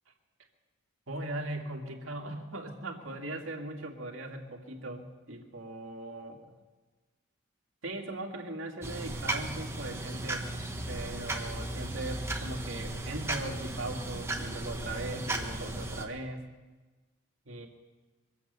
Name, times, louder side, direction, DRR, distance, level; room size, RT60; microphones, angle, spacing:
voice 1, 1.1-6.5 7.8-10.5 10.9-16.4 17.5-17.7, right 1 dB, 80° right, 1 dB, 2.1 m, -39 dB
sound 1, 8.8-16.0, right 2 dB, 15° right, 1.1 m, -36 dB
23.5 x 8.4 x 6.7 m, 1.3 s
head